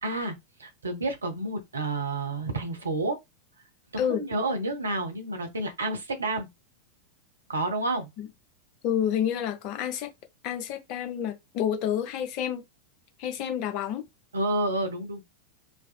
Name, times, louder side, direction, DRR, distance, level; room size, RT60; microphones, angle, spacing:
voice 1, 0.0-0.3 0.6-3.2 3.9-6.5 7.5-8.1 14.3-15.2, right 2 dB, 75° right, 0.6 m, -29 dB
voice 2, 8.8-10.1 10.4-12.6 13.2-14.0, left 9 dB, 40° left, 0.5 m, -29 dB
2.5 x 2.3 x 2.3 m
figure-of-eight pair, 90°, 0 cm